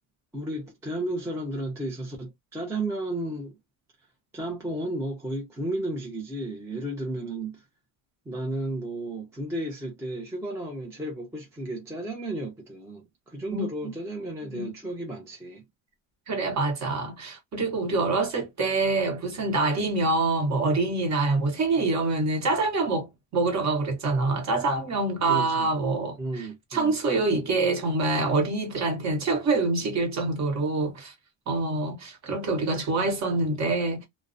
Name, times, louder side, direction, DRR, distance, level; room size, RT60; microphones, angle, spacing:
voice 1, 0.3-3.6 4.3-7.6 8.3-15.6 25.3-25.7 26.2-26.9, right 1 dB, 5° right, 0.4 m, -33 dB
voice 2, 13.5-13.9 14.5-14.7 16.3-26.5 26.7-31.1 31.5-34.0, right 3 dB, 35° right, 0.9 m, -26 dB
2.3 x 2.1 x 2.5 m
cardioid pair, 150°, 48 cm